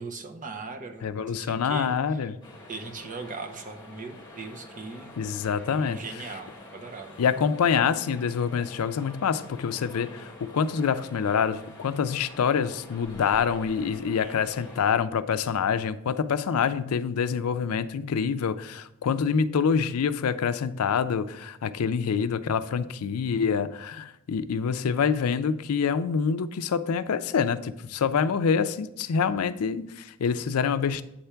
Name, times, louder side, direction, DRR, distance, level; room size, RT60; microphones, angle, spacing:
voice 1, 0.0-2.2 2.7-5.2 5.8-7.2 14.2-14.3 14.6-14.7 16.5-16.6, right 4 dB, 35° right, 5 dB, 0.7 m, -40 dB
voice 2, 1.0-2.4 5.2-6.0 7.2-31.0, left 6 dB, 85° left, 13 dB, 0.4 m, -26 dB
sound 1, 2.4-14.8, left 2 dB, 20° left, 1.5 m, -47 dB
8.6 x 3.4 x 5.7 m, 0.88 s
head